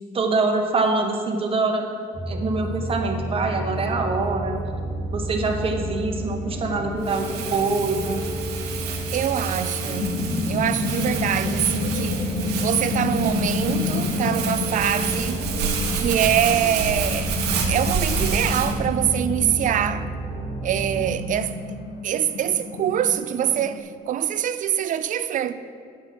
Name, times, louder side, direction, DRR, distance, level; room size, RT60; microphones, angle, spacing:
voice 1, 0.1-1.8 2.3-4.6 5.1-8.3, right 3 dB, 35° right, 1.3 m, -24 dB
sound 1, 2.1-21.2, right 1 dB, 10° left, 1.2 m, -31 dB
Crumpling crinkling, 7.0-18.7, right 6 dB, 80° right, 1.3 m, -30 dB
voice 2, 9.1-10.2 10.5-12.4 12.6-15.5 15.9-17.3 17.7-20.1 20.6-21.5 22.0-25.5, right 10 dB, 50° right, 0.5 m, -24 dB
sound 2, 9.5-23.8, left 3 dB, 55° left, 1.0 m, -29 dB
9.0 x 5.9 x 5.9 m
cardioid pair, 110°, 17 cm